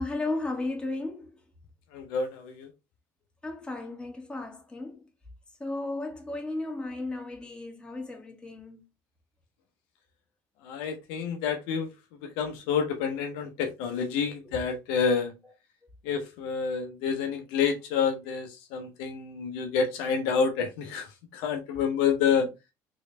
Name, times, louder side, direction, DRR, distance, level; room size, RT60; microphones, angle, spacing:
voice 1, 0.0-1.3 3.4-5.1 5.6-8.8 14.2-14.5 22.4-22.5, left 2 dB, 10° left, 1.5 m, -35 dB
voice 2, 1.9-2.7 10.6-11.9 12.4-15.3 16.0-22.4, left 6 dB, 75° left, 0.8 m, -28 dB
3.9 x 3.2 x 3.2 m
supercardioid pair, 80°, 9 cm